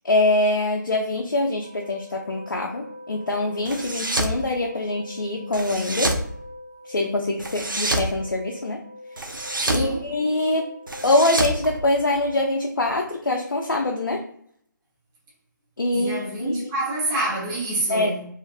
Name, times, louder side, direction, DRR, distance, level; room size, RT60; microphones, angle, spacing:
voice 1, 0.0-6.2 6.9-8.8 9.7-10.7 11.0-14.2 15.8-16.7 17.9-18.1, left 2 dB, 80° left, 0.4 m, -24 dB
sound 1, 1.6-12.5, left 1 dB, 45° left, 1.0 m, -43 dB
sound 2, 3.7-4.4 5.5-6.3 7.4-8.1 9.2-9.9 10.9-12.4, right 1 dB, 85° right, 0.5 m, -27 dB
voice 2, 9.6-10.0 15.9-18.2, right 2 dB, 10° right, 0.4 m, -27 dB
2.4 x 2.4 x 2.3 m
figure-of-eight pair, 150°, 11 cm